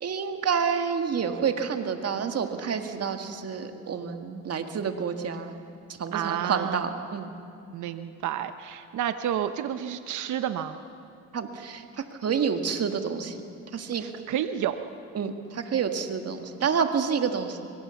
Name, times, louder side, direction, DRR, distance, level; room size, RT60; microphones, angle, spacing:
voice 1, 0.0-5.6 5.9-7.3 11.3-13.4 13.7-14.0 15.1-17.7, right 6 dB, 55° right, 6 dB, 2.0 m, -29 dB
voice 2, 6.1-6.8 7.7-10.8 14.0-14.8, right 10 dB, 75° right, 10 dB, 1.0 m, -30 dB
24.0 x 23.5 x 7.1 m, 2.5 s
cardioid pair, 90°, 30 cm